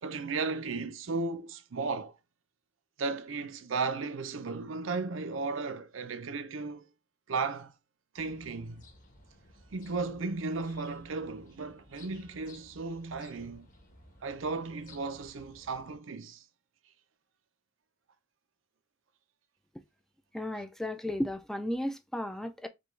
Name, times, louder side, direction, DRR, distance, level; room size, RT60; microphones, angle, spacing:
voice 1, 0.0-2.2 3.0-6.9 7.3-7.7 8.1-8.8 9.7-13.7 14.2-16.5, right 4 dB, 80° right, 0.6 m, -35 dB
sound 1, 8.2-16.0, left 1 dB, 45° left, 1.2 m, -57 dB
voice 2, 20.3-22.7, left 1 dB, ahead, 0.3 m, -34 dB
5.2 x 2.3 x 3.1 m
head